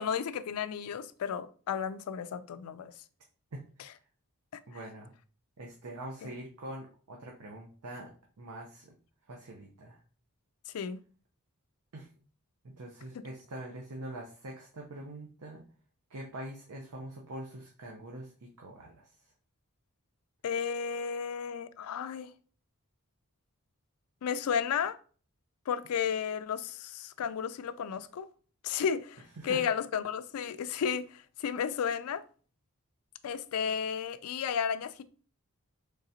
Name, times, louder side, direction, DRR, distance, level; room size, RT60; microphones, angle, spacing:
voice 1, 0.0-2.9 6.2-6.3 10.7-11.0 20.4-22.3 24.2-25.0 25.7-28.3 28.6-32.2 33.2-35.0, left 7 dB, 80° left, 0.4 m, -33 dB
voice 2, 3.5-3.9 4.7-5.1 5.6-8.1 8.4-9.0 9.3-10.0 11.9-12.1 12.6-15.6 16.1-19.1 29.4-29.6, right 1 dB, 90° right, 0.7 m, -44 dB
3.8 x 3.3 x 2.8 m
head